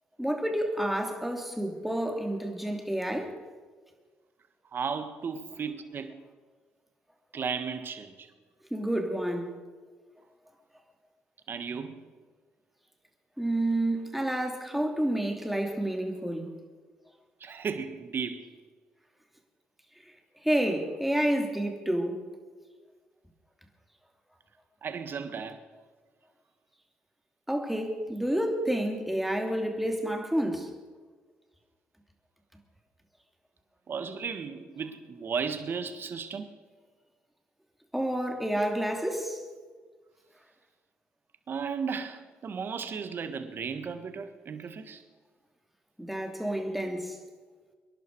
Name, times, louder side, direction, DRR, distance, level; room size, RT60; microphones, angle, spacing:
voice 1, 0.2-3.4 8.7-9.6 13.4-16.5 20.4-22.2 27.5-30.7 37.9-39.4 46.0-47.2, right 1 dB, 5° right, 2.9 m, -29 dB
voice 2, 4.7-6.1 7.3-8.3 11.5-12.0 17.4-18.5 24.8-25.6 33.9-36.5 41.5-45.0, right 6 dB, 50° right, 1.7 m, -35 dB
25.0 x 11.0 x 4.8 m
supercardioid pair, 65°, 5 cm